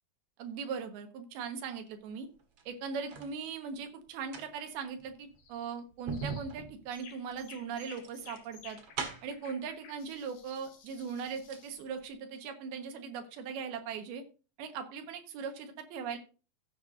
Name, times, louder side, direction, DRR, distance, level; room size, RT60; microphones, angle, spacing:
voice 1, 0.4-2.3 2.7-8.8 9.2-14.2 14.6-16.2, right 6 dB, 90° right, 6 dB, 3.3 m, -39 dB
sound 1, 2.4-3.4 4.1-9.5 10.4-10.5 10.9-11.7 12.0-12.1, right 5 dB, 50° right, 2.1 m, -42 dB
sound 2, 5.4-5.7 6.1-6.5 6.9-11.9, left 6 dB, 60° left, 3.0 m, -54 dB
15.5 x 8.2 x 2.6 m, 0.34 s
omnidirectional pair, 4.3 m